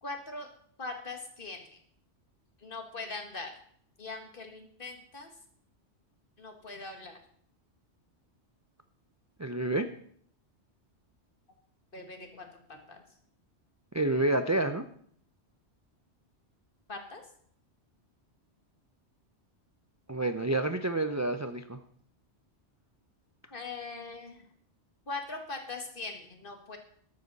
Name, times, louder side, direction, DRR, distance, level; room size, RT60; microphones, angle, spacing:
voice 1, 0.0-0.5 0.8-1.8 2.6-3.5 4.0-5.3 6.4-7.2 11.9-12.6 12.9-13.0 16.9-17.2 23.5-24.5 25.1-26.8, left 3 dB, 50° left, 4 dB, 1.9 m, -41 dB
voice 2, 9.4-9.9 13.9-14.8 20.1-21.8, right 2 dB, 25° right, 9 dB, 0.4 m, -29 dB
13.5 x 11.5 x 4.1 m, 0.62 s
omnidirectional pair, 1.2 m